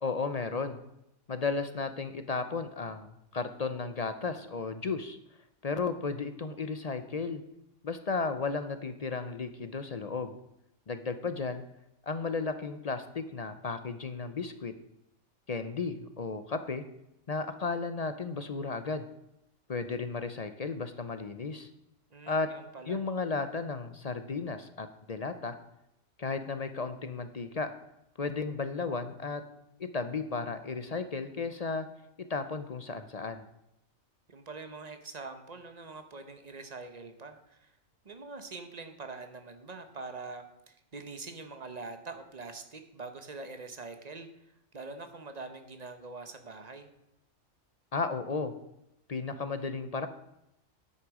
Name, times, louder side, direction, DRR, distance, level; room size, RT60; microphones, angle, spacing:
voice 1, 0.0-0.8 1.3-5.2 5.6-7.4 7.8-10.4 10.9-11.6 12.0-14.7 15.5-16.8 17.3-19.1 19.7-21.7 22.3-22.5 22.9-25.5 26.2-27.7 28.2-29.4 29.8-31.9 32.3-33.4 47.9-48.5 49.1-50.1, left 4 dB, 40° left, 9 dB, 0.6 m, -34 dB
voice 2, 22.1-23.0 34.3-37.7 38.0-44.3 44.7-46.9, right 3 dB, 35° right, 7 dB, 1.0 m, -44 dB
9.9 x 8.0 x 4.9 m, 0.84 s
omnidirectional pair, 1.3 m